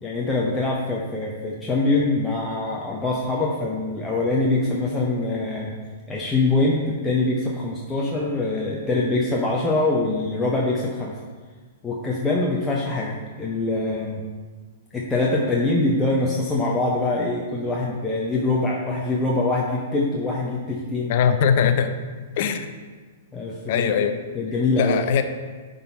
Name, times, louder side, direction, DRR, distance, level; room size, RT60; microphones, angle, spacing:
voice 1, 0.0-5.7 6.1-11.1 11.8-14.2 14.9-21.2 23.3-23.9 24.3-25.0, left 2 dB, 10° left, -4 dB, 0.9 m, -24 dB
voice 2, 21.1-21.9 22.4-22.7 23.7-24.2 24.8-25.2, left 7 dB, 50° left, 9 dB, 0.6 m, -20 dB
10.5 x 4.0 x 4.1 m, 1.4 s
figure-of-eight pair, 110°, 0 cm